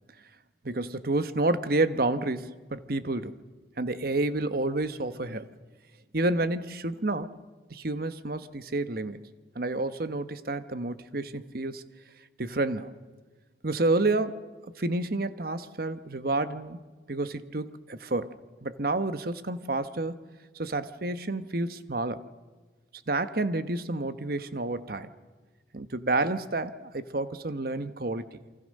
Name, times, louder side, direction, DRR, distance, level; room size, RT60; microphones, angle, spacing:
voice 1, 0.6-3.3 3.8-5.5 6.1-7.3 7.7-9.2 9.5-11.8 12.4-12.9 13.6-16.8 17.1-18.3 18.6-20.2 20.5-22.2 23.1-25.1 25.7-28.4, right 2 dB, 55° right, 12 dB, 1.1 m, -29 dB
28.5 x 24.5 x 6.5 m, 1.3 s
head